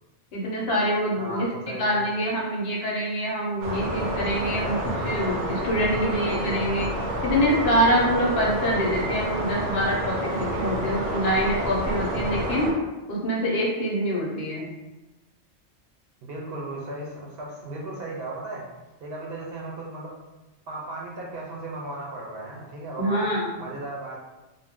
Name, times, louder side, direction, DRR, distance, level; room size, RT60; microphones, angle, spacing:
voice 1, 0.3-6.9 7.2-12.7 13.1-14.7 23.0-23.6, equal, 65° left, -4 dB, 0.9 m, -25 dB
voice 2, 1.2-1.9 5.7-6.4 10.6-11.3 16.2-18.6 19.0-20.1 20.7-23.3 23.6-24.2, right 2 dB, 60° right, -3 dB, 0.8 m, -36 dB
sound 1, 3.6-12.7, right 1 dB, 90° right, 1.0 m, -29 dB
2.6 x 2.1 x 3.4 m, 1.1 s
omnidirectional pair, 1.2 m